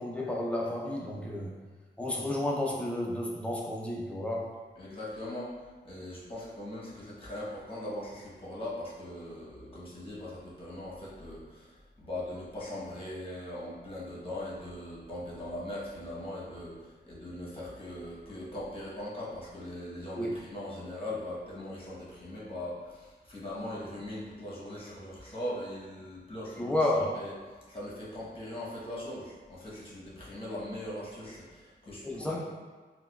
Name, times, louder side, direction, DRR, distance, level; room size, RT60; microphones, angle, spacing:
voice 1, 0.0-1.6 2.0-4.6 20.1-20.3 26.6-27.1 32.0-32.4, left 1 dB, 5° left, -3 dB, 0.5 m, -31 dB
voice 2, 4.8-5.5 5.8-27.3 27.7-32.4, left 1 dB, 30° left, -7 dB, 1.0 m, -40 dB
4.1 x 2.2 x 2.3 m, 1.3 s
wide cardioid pair, 110°, 19 cm